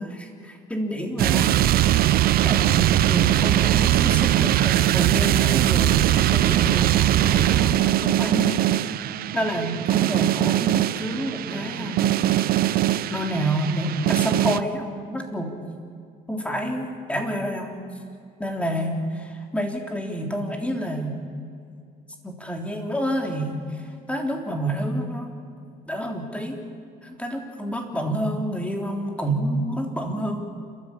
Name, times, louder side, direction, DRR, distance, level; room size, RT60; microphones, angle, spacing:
voice 1, 0.0-1.6 2.1-8.6 9.3-12.2 13.1-15.6 16.3-17.9 18.4-21.1 22.2-23.8 24.1-25.4 25.9-26.6 27.0-30.4, right 1 dB, 5° left, 2 dB, 3.5 m, -28 dB
sound 1, 1.2-14.6, right 13 dB, 65° right, 0.6 m, -21 dB
29.0 x 14.0 x 8.6 m, 2.4 s
cardioid pair, 110°, 17 cm